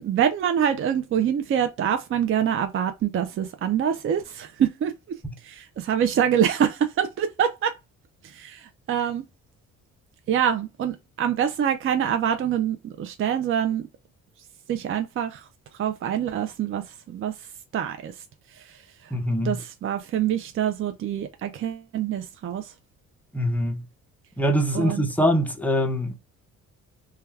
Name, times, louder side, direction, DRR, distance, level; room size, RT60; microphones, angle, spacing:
voice 1, 0.0-7.7 8.2-9.2 10.3-13.9 14.7-15.5 15.7-17.5 17.7-18.2 18.5-19.1 19.4-22.7 24.7-25.1, right 9 dB, 45° right, 0.4 m, -25 dB
voice 2, 19.1-19.6 23.3-23.8 24.4-26.1, equal, 5° left, 0.6 m, -23 dB
2.3 x 2.2 x 3.2 m
cardioid pair, 90°, 30 cm